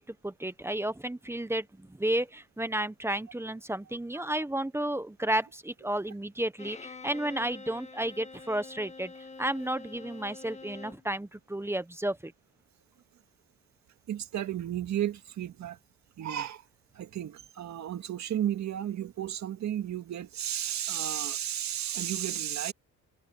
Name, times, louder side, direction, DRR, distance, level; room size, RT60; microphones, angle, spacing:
voice 1, 0.0-9.1 9.4-12.3, right 1 dB, 10° right, 1.2 m, -32 dB
Bowed string instrument, 6.6-11.1, left 3 dB, 20° left, 1.6 m, -46 dB
voice 2, 14.1-15.8 16.2-16.6 16.9-22.7, right 11 dB, 65° right, 2.2 m, -33 dB
cardioid pair, 90°, 30 cm